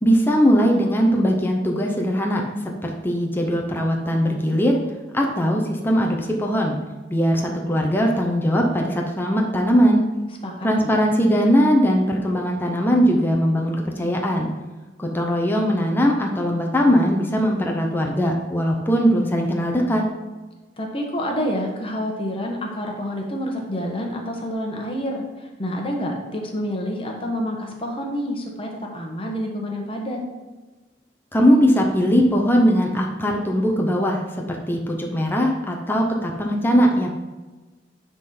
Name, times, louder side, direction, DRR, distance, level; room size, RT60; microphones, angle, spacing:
voice 1, 0.0-2.4 2.8-4.8 5.1-6.8 7.1-10.0 10.6-14.5 15.0-20.0 31.3-34.2 34.5-37.1, equal, 10° left, 0 dB, 0.8 m, -20 dB
voice 2, 10.4-10.9 20.8-30.2, equal, 30° left, 0 dB, 1.3 m, -28 dB
9.5 x 3.9 x 4.4 m, 1.2 s
head